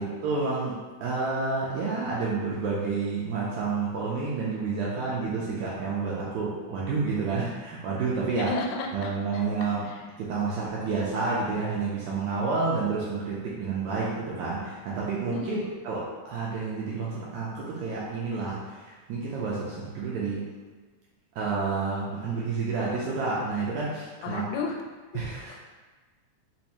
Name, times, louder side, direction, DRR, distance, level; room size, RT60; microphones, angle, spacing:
voice 1, 0.0-8.5 8.9-9.9 10.2-20.4 21.3-24.4 25.1-25.6, right 4 dB, 80° right, -6 dB, 1.7 m, -29 dB
voice 2, 8.4-9.1 9.8-10.0 15.3-15.7 24.2-24.8 25.1-25.6, left 4 dB, 90° left, 0 dB, 2.2 m, -33 dB
5.2 x 2.0 x 2.9 m, 1.3 s
omnidirectional pair, 3.7 m